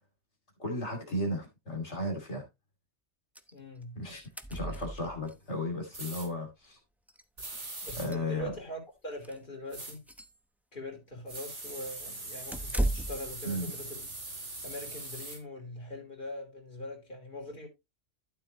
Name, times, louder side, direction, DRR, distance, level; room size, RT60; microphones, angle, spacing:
voice 1, 0.6-2.5 4.0-4.2 4.5-6.8 8.0-8.5 13.4-13.6, left 1 dB, 75° left, 3.0 m, -34 dB
sound 1, 3.4-3.5 3.8-3.9 4.1-5.4 6.6-6.7 7.1-7.2 7.7-8.7 9.1-9.4 9.8-10.4 12.5-13.3, right 1 dB, ahead, 0.8 m, -35 dB
voice 2, 3.5-4.0 4.7-4.8 7.8-10.0 10.7-17.7, left 1 dB, 45° left, 3.9 m, -42 dB
sound 2, 5.9-6.3 7.4-8.1 9.7-10.0 11.3-15.4, right 2 dB, 80° right, 3.6 m, -41 dB
12.0 x 7.5 x 3.0 m
omnidirectional pair, 1.2 m